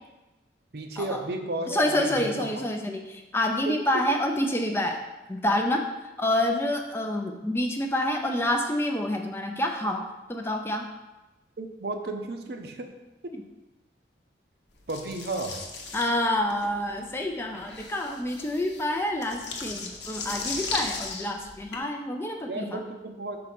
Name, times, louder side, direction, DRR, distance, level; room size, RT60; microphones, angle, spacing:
voice 1, 0.7-2.5 3.7-3.8 11.6-12.9 13.2-13.3 14.9-15.6 22.5-23.4, right 2 dB, 60° right, 5 dB, 0.7 m, -33 dB
voice 2, 1.7-5.0 5.3-10.9 13.3-13.4 15.9-22.8, left 1 dB, 15° left, 3 dB, 0.4 m, -28 dB
sound 1, 14.9-21.8, left 4 dB, 70° left, 0.9 m, -36 dB
5.4 x 3.8 x 5.9 m, 1.1 s
head